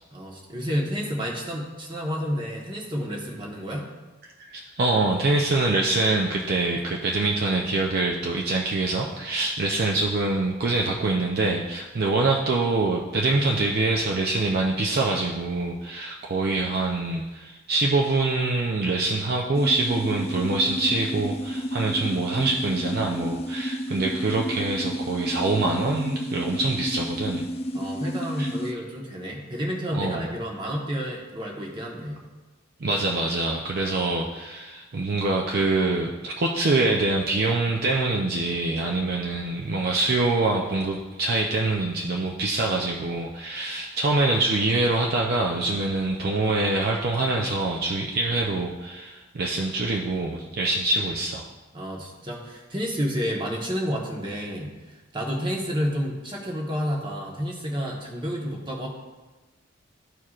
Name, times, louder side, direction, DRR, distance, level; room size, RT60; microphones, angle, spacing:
voice 1, 0.1-3.9 27.7-32.2 51.7-54.7 55.1-58.9, equal, 25° right, -1 dB, 1.2 m, -30 dB
voice 2, 4.4-27.4 28.4-28.5 29.9-30.4 32.8-51.4, right 2 dB, 50° right, -1 dB, 0.5 m, -25 dB
sound 1, 19.5-28.7, equal, 30° left, 0.4 m, -31 dB
13.0 x 4.6 x 2.4 m, 1.2 s
head